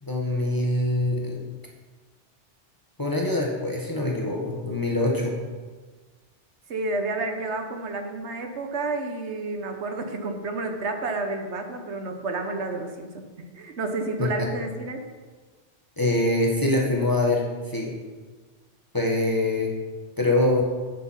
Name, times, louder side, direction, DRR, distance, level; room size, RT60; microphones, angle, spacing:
voice 1, 0.0-1.4 3.0-5.3 14.2-14.5 16.0-17.9 18.9-19.7 20.2-20.6, left 2 dB, 20° left, -2 dB, 1.4 m, -24 dB
voice 2, 6.7-15.0, right 3 dB, 70° right, 5 dB, 1.2 m, -30 dB
8.4 x 7.0 x 5.7 m, 1.4 s
omnidirectional pair, 1.2 m